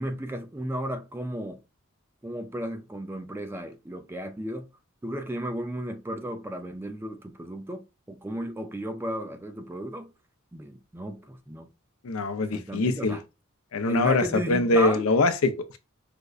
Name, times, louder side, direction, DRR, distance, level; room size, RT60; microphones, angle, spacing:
voice 1, 0.0-1.6 2.2-4.7 5.0-10.1 10.5-11.7 12.5-13.2 13.9-15.0, right 1 dB, 10° right, 0.4 m, -34 dB
voice 2, 12.0-13.2 13.7-15.8, left 2 dB, 85° left, 0.5 m, -23 dB
5.0 x 2.1 x 2.3 m
head